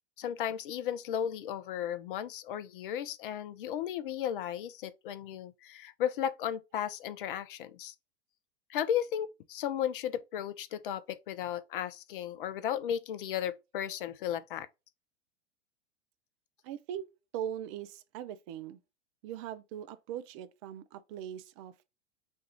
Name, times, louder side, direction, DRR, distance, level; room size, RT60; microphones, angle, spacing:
voice 1, 0.2-7.9 8.7-14.7, left 10 dB, 50° left, 0.6 m, -35 dB
voice 2, 16.6-17.0 17.3-18.8 19.2-21.9, right 10 dB, 30° right, 0.4 m, -40 dB
4.4 x 2.4 x 4.1 m
figure-of-eight pair, 90°, 34 cm